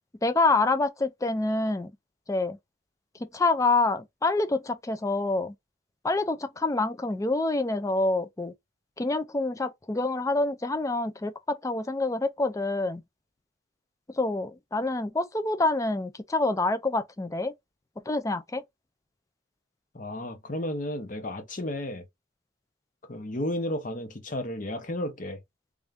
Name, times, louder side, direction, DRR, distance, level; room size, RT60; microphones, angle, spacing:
voice 1, 0.2-1.9 2.3-2.6 3.2-5.5 6.0-8.5 9.0-13.0 14.1-17.5 18.1-18.6, left 2 dB, 15° left, 0.4 m, -27 dB
voice 2, 19.9-22.0 23.1-25.4, left 1 dB, 40° left, 0.8 m, -33 dB
3.5 x 2.6 x 3.4 m
head